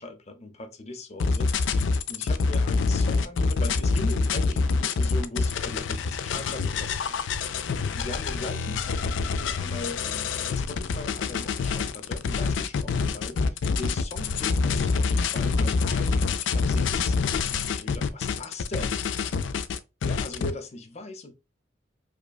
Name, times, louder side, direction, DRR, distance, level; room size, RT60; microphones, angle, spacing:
voice 1, 0.0-19.0 20.0-21.3, left 2 dB, 35° left, 0.6 m, -40 dB
sound 1, 1.2-20.5, left 4 dB, 85° left, 0.4 m, -26 dB
5.0 x 2.2 x 2.2 m
head